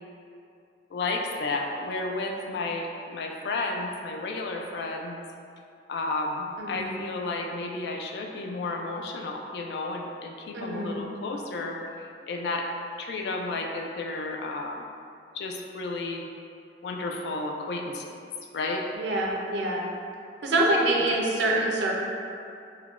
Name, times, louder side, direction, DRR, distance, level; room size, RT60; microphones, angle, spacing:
voice 1, 0.9-5.2 5.9-12.7 13.0-14.9 15.3-16.2 16.8-18.2 18.5-18.9 20.6-20.8, left 2 dB, 65° left, 2 dB, 0.3 m, -32 dB
voice 2, 6.6-6.9 10.5-11.0 18.9-19.9 20.4-21.9, right 1 dB, 80° right, -2 dB, 0.5 m, -25 dB
3.6 x 2.2 x 2.4 m, 2.5 s
head